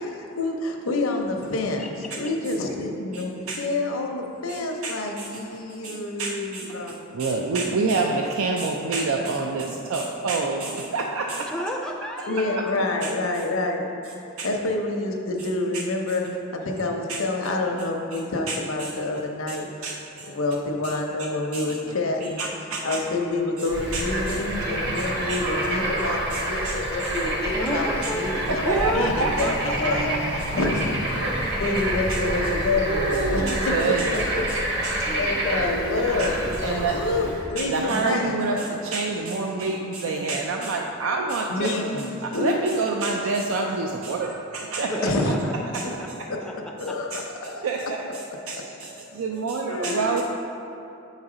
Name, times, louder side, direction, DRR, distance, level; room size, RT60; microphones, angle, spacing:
voice 1, 0.4-1.9 2.2-7.2 7.6-7.9 8.9-9.1 9.5-9.7 12.3-13.9 14.2-16.2 16.5-19.7 20.3-22.5 22.8-27.9 28.2-28.6 28.9-30.1 30.5-31.0 31.3-34.7 35.1-38.4 41.5-42.6 45.0-45.3 45.8-45.9 46.8-47.7 49.7-50.2, left 2 dB, 80° left, 2 dB, 0.7 m, -27 dB
voice 2, 3.1-3.6 4.5-11.5 13.0-13.4 14.4-14.5 15.7-15.8 17.1-17.2 18.1-18.2 18.5-20.3 20.8-21.0 21.5-23.2 23.6-23.7 23.9-24.4 25.0-25.4 26.3-27.3 28.0-28.1 28.5-30.5 32.1-32.2 32.8-34.2 34.5-34.6 34.8-35.1 36.2-36.3 36.6-37.0 37.6-45.1 45.7-45.9 46.2-46.3 47.1-50.2, right 3 dB, 80° right, 1 dB, 0.4 m, -28 dB
voice 3, 11.4-12.7 27.5-28.4 28.6-30.3 35.0-36.2 44.9-45.5 46.4-47.0, equal, 5° left, 0 dB, 0.4 m, -31 dB
Bird / Frog, 23.7-37.4, right 1 dB, 50° right, 1.3 m, -28 dB
sound 1, 27.0-31.7, equal, 30° right, 0.8 m, -38 dB
7.9 x 4.1 x 4.9 m, 2.8 s
head